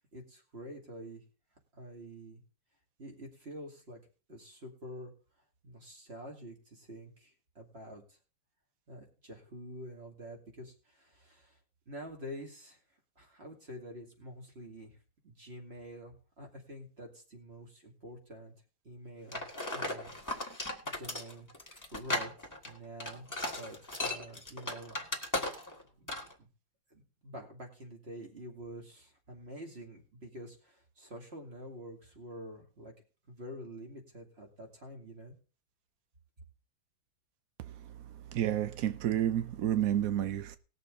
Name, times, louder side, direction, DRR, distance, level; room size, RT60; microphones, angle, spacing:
voice 1, 0.1-1.2 1.7-2.4 3.0-4.0 4.3-5.1 5.6-8.2 8.9-11.6 11.9-12.8 13.2-14.9 15.2-18.5 18.8-19.4 19.7-20.1 20.8-22.3 22.6-25.0 25.5-26.1 26.4-26.5 26.9-32.9 33.3-35.3, equal, 30° right, 2.6 m, -47 dB
sound 1, 19.3-25.8 26.1-26.3, left 1 dB, 10° left, 1.5 m, -36 dB
voice 2, 38.3-40.6, right 11 dB, 80° right, 0.7 m, -30 dB
19.5 x 6.8 x 3.8 m
omnidirectional pair, 2.4 m